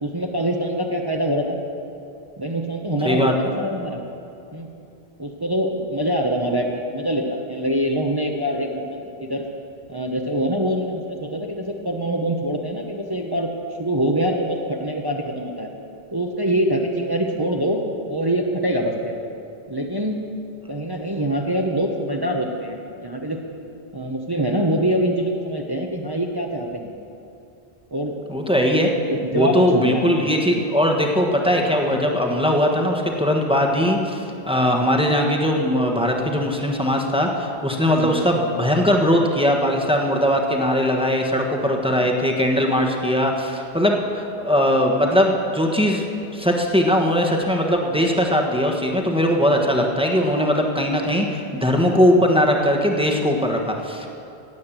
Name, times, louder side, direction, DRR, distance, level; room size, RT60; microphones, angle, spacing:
voice 1, 0.0-1.6 2.4-4.0 4.5-4.7 5.2-9.4 9.9-13.5 13.8-15.7 16.1-17.8 18.1-19.1 19.7-20.2 20.7-23.4 23.9-26.9 27.9-28.2 29.1-30.1 37.9-38.2 41.9-42.1, right 1 dB, 25° right, 1 dB, 1.0 m, -24 dB
voice 2, 28.3-28.9 29.3-54.1, equal, 5° right, 1 dB, 1.3 m, -20 dB
17.0 x 8.6 x 7.4 m, 2.7 s
omnidirectional pair, 1.1 m